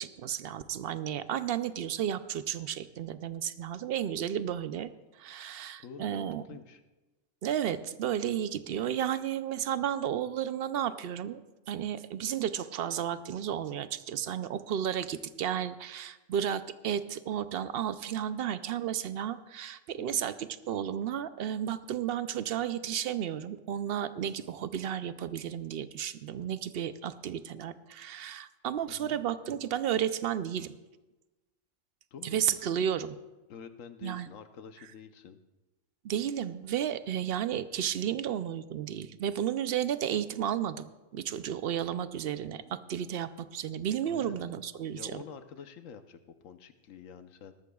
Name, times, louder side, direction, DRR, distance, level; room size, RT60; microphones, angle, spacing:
voice 1, 0.0-6.6 7.4-11.4 11.7-30.8 32.2-33.2 34.0-34.3 36.0-45.2, right 9 dB, 60° right, 13 dB, 0.6 m, -33 dB
voice 2, 5.8-6.8 20.0-20.2 28.8-29.2 32.1-32.4 33.5-35.4 44.1-44.4 44.9-47.5, left 7 dB, 85° left, 9 dB, 1.2 m, -47 dB
19.0 x 13.0 x 2.3 m, 1.1 s
omnidirectional pair, 1.3 m